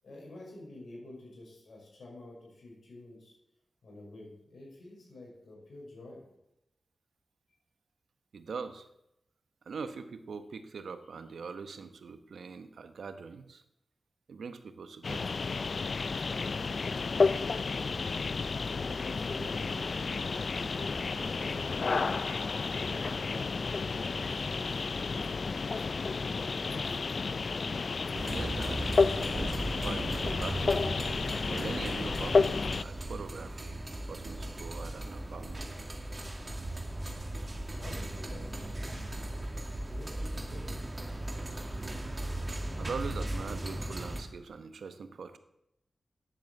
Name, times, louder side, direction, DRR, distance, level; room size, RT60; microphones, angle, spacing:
voice 1, 0.0-3.4 3.8-6.2 18.7-25.8 26.3-27.0 37.8-39.5 39.8-41.1, left 2 dB, 80° left, -3 dB, 5.8 m, -48 dB
voice 2, 8.3-8.9 9.7-13.6 14.3-15.4 28.1-29.0 29.2-30.8 31.5-35.7 42.7-45.4, right 5 dB, 85° right, 10 dB, 0.9 m, -42 dB
sound 1, 15.0-32.8, left 4 dB, 65° left, 0.4 m, -31 dB
sound 2, 28.1-44.2, right 1 dB, 30° right, 2.2 m, -37 dB
10.0 x 7.6 x 7.7 m, 0.83 s
cardioid pair, 50°, 0 cm